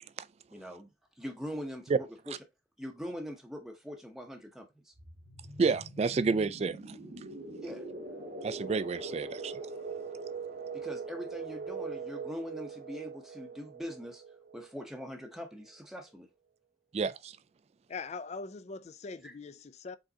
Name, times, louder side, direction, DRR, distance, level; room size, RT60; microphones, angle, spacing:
voice 1, 0.5-0.9 1.2-2.4 2.8-4.9 7.6-7.9 10.7-14.2 14.5-16.3 19.2-19.4, equal, ahead, 0.8 m, -42 dB
sound 1, 5.0-15.5, right 4 dB, 55° right, 1.0 m, -42 dB
voice 2, 5.6-7.0 8.4-9.6 16.9-17.4, right 4 dB, 35° right, 0.3 m, -30 dB
voice 3, 17.9-20.0, left 4 dB, 40° left, 0.4 m, -42 dB
4.9 x 3.8 x 2.8 m
head